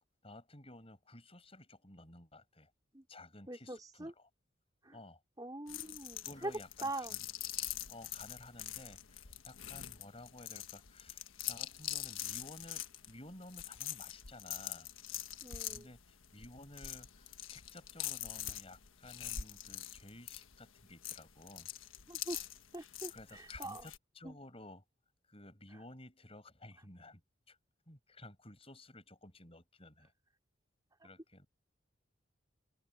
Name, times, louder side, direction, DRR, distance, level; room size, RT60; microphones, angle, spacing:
voice 1, 0.2-2.7 3.1-4.3 4.9-5.2 6.2-7.3 7.9-11.2 11.5-14.9 15.7-21.7 23.1-24.8 25.3-27.2 27.5-27.6 27.9-30.1 31.0-31.5, left 2 dB, 30° left, 7.4 m, -54 dB
voice 2, 3.5-4.1 4.8-5.0 5.4-6.5 6.8-7.2 15.4-15.9 22.1-22.4 22.7-23.9 24.2-24.4, right 2 dB, 20° right, 3.9 m, -43 dB
sound 1, 5.7-24.0, left 12 dB, 85° left, 1.4 m, -44 dB
open air
head